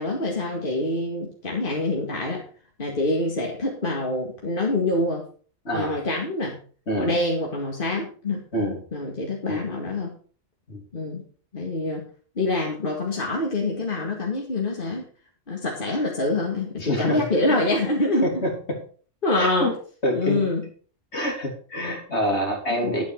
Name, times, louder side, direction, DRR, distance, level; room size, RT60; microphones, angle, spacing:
voice 1, 0.0-2.4 2.8-5.3 5.7-6.6 7.0-10.2 10.9-11.3 11.5-12.1 12.4-15.0 15.5-18.3 19.2-19.7 20.1-20.6 22.7-23.0, left 2 dB, 45° left, -1 dB, 2.2 m, -26 dB
voice 2, 5.6-6.0 6.9-7.1 8.5-8.8 9.5-9.6 10.7-10.8 16.8-17.2 18.2-18.8 19.3-19.7 20.0-20.4 21.1-23.1, equal, 60° left, 1 dB, 3.3 m, -26 dB
11.5 x 8.5 x 4.6 m, 0.42 s
omnidirectional pair, 1.3 m